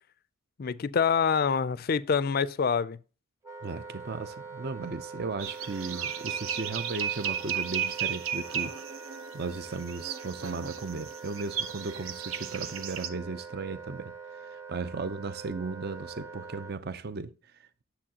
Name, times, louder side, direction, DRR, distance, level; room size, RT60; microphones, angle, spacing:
voice 1, 0.6-3.0, left 6 dB, 45° left, 0.4 m, -26 dB
Wind instrument woodwind instrument, 3.4-16.8, right 5 dB, 10° right, 0.9 m, -44 dB
voice 2, 3.6-8.8 9.1-17.8, right 4 dB, 45° right, 0.5 m, -36 dB
sound 1, 5.4-13.1, right 8 dB, 70° right, 0.9 m, -35 dB
9.9 x 7.1 x 2.8 m
head